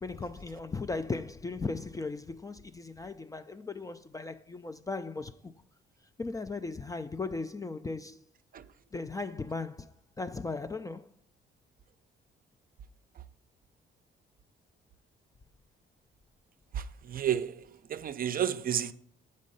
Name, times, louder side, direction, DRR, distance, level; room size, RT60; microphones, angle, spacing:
voice 1, 0.0-5.5 6.2-8.3 8.9-11.1, left 3 dB, 15° left, 0.3 m, -37 dB
voice 2, 16.7-18.9, right 9 dB, 45° right, 0.5 m, -32 dB
7.4 x 5.3 x 5.3 m
cardioid pair, 90°, 20 cm